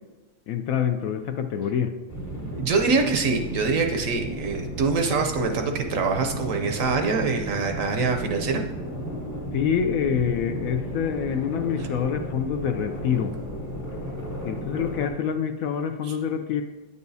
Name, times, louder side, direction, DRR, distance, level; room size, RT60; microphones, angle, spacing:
voice 1, 0.5-2.0 9.5-13.4 14.4-16.6, left 8 dB, 70° left, 7 dB, 0.9 m, -26 dB
sound 1, 2.1-15.1, equal, 15° left, 0.6 m, -34 dB
voice 2, 2.5-8.6 11.8-11.9 16.0-16.2, right 4 dB, 65° right, 4 dB, 1.0 m, -24 dB
9.4 x 6.9 x 2.7 m, 1.2 s
omnidirectional pair, 1.7 m